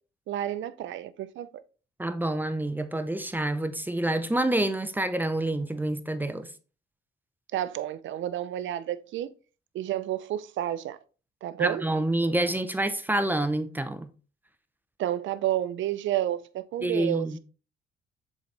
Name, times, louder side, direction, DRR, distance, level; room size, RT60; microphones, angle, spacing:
voice 1, 0.3-1.5 7.5-9.3 9.7-11.0 11.4-11.8 15.0-17.3, right 12 dB, 75° right, 0.6 m, -30 dB
voice 2, 2.0-6.5 11.6-14.1 16.8-17.4, right 1 dB, 10° right, 0.6 m, -27 dB
7.3 x 4.0 x 3.3 m
cardioid pair, 90°, 20 cm